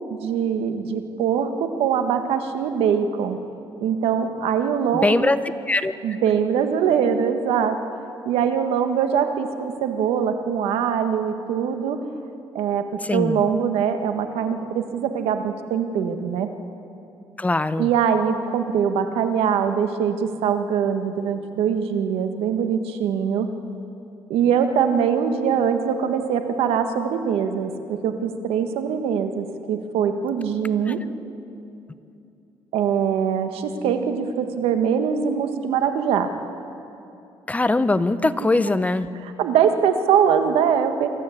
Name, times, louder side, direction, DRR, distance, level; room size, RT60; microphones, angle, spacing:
voice 1, 0.1-3.4 3.8-5.3 6.0-7.8 8.2-12.0 12.5-16.5 17.8-23.5 24.3-31.0 32.7-36.3 39.4-41.1, right 7 dB, 90° right, 7 dB, 1.5 m, -22 dB
voice 2, 5.0-5.4 5.7-5.9 13.0-13.4 17.4-17.9 30.9-31.0 37.5-39.1, left 2 dB, 15° left, 13 dB, 0.7 m, -21 dB
24.5 x 13.5 x 8.4 m, 2.7 s
cardioid pair, 100°, 10 cm